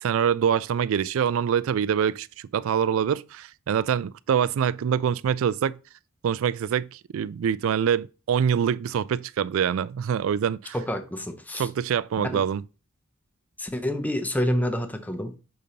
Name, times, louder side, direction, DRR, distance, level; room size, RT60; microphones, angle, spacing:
voice 1, 0.0-5.8 6.2-10.7 11.6-12.6, right 8 dB, 65° right, 0.3 m, -25 dB
voice 2, 10.7-11.7 12.3-12.4 13.6-15.4, left 1 dB, 5° left, 0.6 m, -28 dB
6.4 x 5.2 x 2.8 m
head